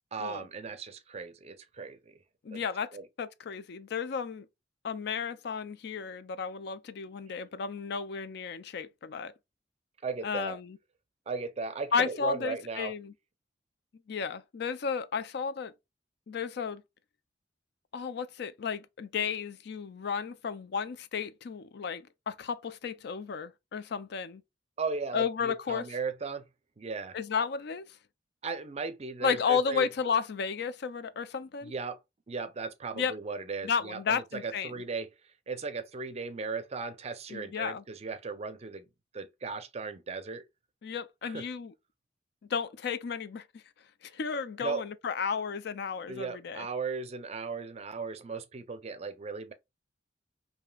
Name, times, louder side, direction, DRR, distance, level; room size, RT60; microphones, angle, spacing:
voice 1, 0.1-2.2 2.5-2.6 2.9-3.0 10.0-10.6 11.3-12.9 24.8-26.5 26.8-27.2 28.4-29.9 31.6-32.0 32.3-38.8 39.1-40.4 41.2-41.5 44.6-44.8 46.1-49.5, right 4 dB, 35° right, 0.5 m, -37 dB
voice 2, 2.4-2.9 3.2-4.5 4.8-9.3 10.2-10.8 11.9-13.1 14.1-15.7 16.3-16.8 17.9-24.4 25.1-25.9 27.1-27.8 29.2-31.7 33.0-33.1 33.6-34.7 37.3-37.8 40.8-41.7 42.5-43.6 44.0-46.7, left 6 dB, 65° left, 0.4 m, -33 dB
5.0 x 2.7 x 2.3 m
head